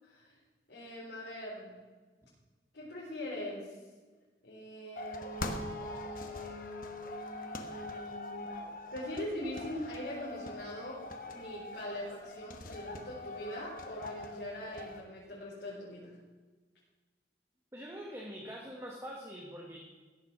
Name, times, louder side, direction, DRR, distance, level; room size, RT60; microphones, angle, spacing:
voice 1, 0.0-0.3 0.7-1.8 2.7-3.8 4.4-8.5 8.9-16.1, left 1 dB, 75° left, -8 dB, 4.3 m, -42 dB
sound 1, 5.0-15.0, left 2 dB, 50° left, 1.2 m, -43 dB
voice 2, 17.7-19.8, equal, 15° right, -1 dB, 1.5 m, -44 dB
16.0 x 7.3 x 6.1 m, 1.3 s
head